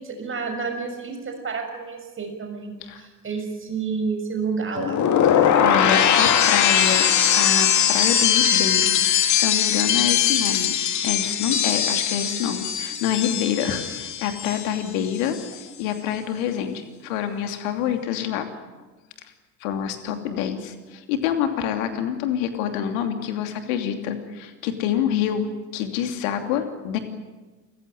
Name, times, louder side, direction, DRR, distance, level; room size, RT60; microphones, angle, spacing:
voice 1, 0.0-5.0, right 5 dB, 25° right, 4 dB, 6.2 m, -30 dB
sound 1, 4.8-14.9 15.1-15.6, left 8 dB, 35° left, 2.4 m, -21 dB
voice 2, 5.3-7.0 7.3-15.4 15.8-18.5 19.6-25.5 25.7-27.0, left 9 dB, 55° left, 7 dB, 3.0 m, -27 dB
28.5 x 15.5 x 10.0 m, 1.3 s
figure-of-eight pair, 65°, 46 cm